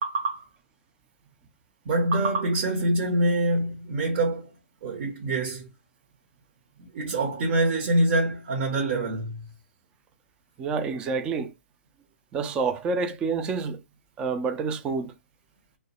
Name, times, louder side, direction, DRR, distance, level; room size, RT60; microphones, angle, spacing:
voice 1, 0.0-0.5 1.9-4.5 4.8-5.7 6.8-9.5, right 1 dB, 40° right, 0.8 m, -25 dB
voice 2, 10.6-11.5 12.3-13.8 14.2-15.1, right 4 dB, 15° right, 0.3 m, -28 dB
2.2 x 2.1 x 2.8 m
hypercardioid pair, 145°, 8 cm